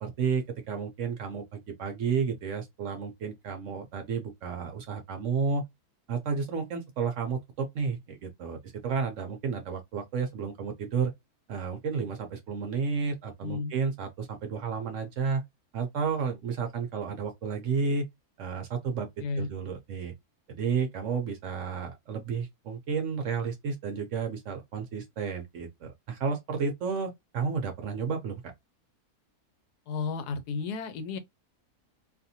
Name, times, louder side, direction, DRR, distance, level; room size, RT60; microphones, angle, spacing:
voice 1, 0.0-5.6 6.1-11.1 11.5-15.4 15.7-18.1 18.4-19.1 19.4-20.1 20.5-28.5, right 5 dB, 65° right, 0.8 m, -32 dB
voice 2, 13.4-13.7 19.2-19.5 29.9-31.2, left 4 dB, 85° left, 1.2 m, -33 dB
2.7 x 2.5 x 2.7 m
omnidirectional pair, 1.7 m